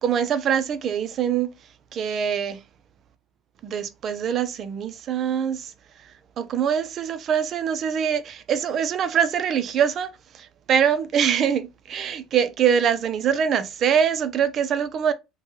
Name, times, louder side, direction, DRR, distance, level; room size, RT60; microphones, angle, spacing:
voice 1, 0.0-2.6 3.6-15.1, right 8 dB, 45° right, 0.4 m, -24 dB
3.0 x 2.2 x 3.0 m
cardioid pair, 115°, 0 cm